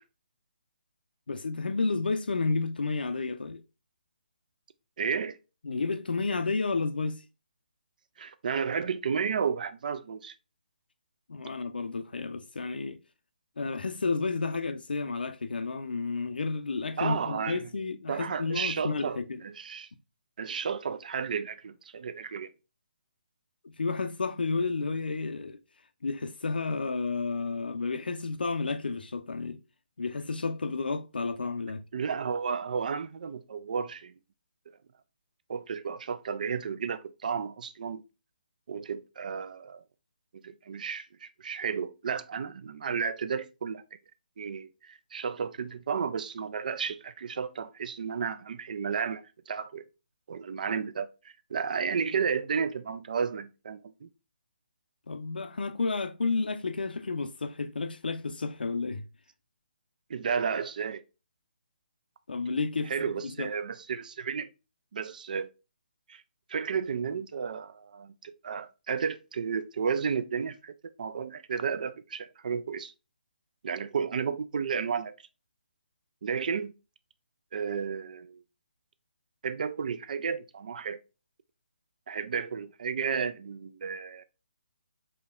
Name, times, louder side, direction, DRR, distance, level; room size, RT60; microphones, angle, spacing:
voice 1, 1.3-3.6 5.6-7.2 11.3-13.0 13.6-19.4 23.6-25.6 26.0-29.6 30.0-31.8 55.1-59.0 62.3-63.1 63.4-63.5, left 4 dB, 80° left, 0.5 m, -31 dB
voice 2, 5.0-5.4 8.2-10.3 17.0-17.6 18.1-19.9 20.4-22.5 31.9-34.1 35.5-38.0 38.7-39.8 40.4-43.8 44.4-49.8 50.3-54.1 60.1-61.0 62.9-64.5 64.9-65.5 66.1-66.2 66.5-72.9 73.6-75.1 76.2-76.7 77.5-78.4 79.4-81.0 82.1-84.2, right 6 dB, 55° right, 0.3 m, -32 dB
4.9 x 2.9 x 2.3 m
figure-of-eight pair, 150°, 5 cm